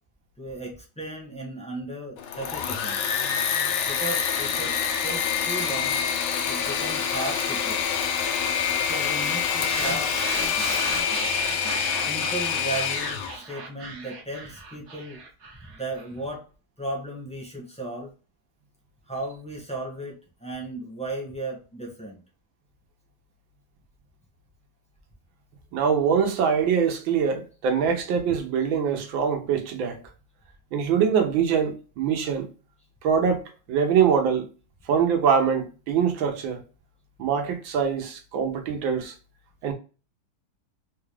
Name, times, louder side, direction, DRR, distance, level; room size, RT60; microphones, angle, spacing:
voice 1, 0.4-3.2 3.9-4.7 5.0-6.0 6.4-8.0 8.8-10.1 12.0-15.2 15.7-16.4 16.8-18.1 19.1-22.2, right 2 dB, 5° left, 0.8 m, -35 dB
Engine / Mechanisms, 2.2-13.4, left 7 dB, 90° left, 1.4 m, -26 dB
sound 1, 9.5-16.1, right 4 dB, 60° right, 1.3 m, -36 dB
voice 2, 25.7-30.0 30.7-32.5 33.0-34.5 34.9-36.6 37.2-39.1 39.6-39.7, right 7 dB, 80° right, 1.6 m, -23 dB
4.0 x 2.4 x 3.1 m
omnidirectional pair, 2.1 m